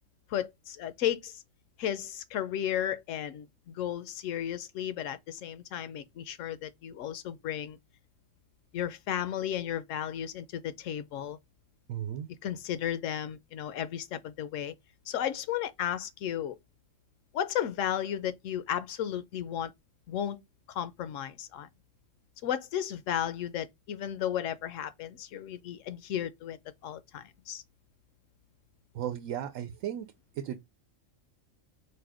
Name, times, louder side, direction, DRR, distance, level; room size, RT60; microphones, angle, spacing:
voice 1, 0.3-1.4 1.8-7.8 8.7-11.4 12.4-14.7 15.1-16.6 17.3-19.7 20.1-20.4 20.7-21.7 22.4-26.6 26.8-27.6, left 10 dB, 75° left, 1.0 m, -34 dB
voice 2, 11.9-12.3 28.9-30.1 30.3-30.6, right 10 dB, 80° right, 0.9 m, -35 dB
4.7 x 2.1 x 4.8 m
omnidirectional pair, 1.3 m